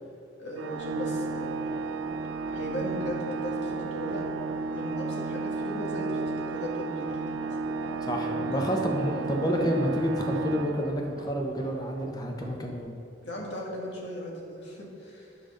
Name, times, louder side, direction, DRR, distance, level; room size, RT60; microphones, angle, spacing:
voice 1, 0.4-1.6 2.5-4.3 4.7-7.2 8.4-9.1 13.2-15.3, equal, 75° left, -3 dB, 2.0 m, -37 dB
Organ, 0.6-11.4, right 3 dB, 90° right, 0.5 m, -33 dB
Hammer, 0.7-12.8, equal, 25° right, 1.0 m, -48 dB
voice 2, 8.0-12.9, equal, 20° left, 1 dB, 0.8 m, -29 dB
9.4 x 5.1 x 6.4 m, 2.7 s
head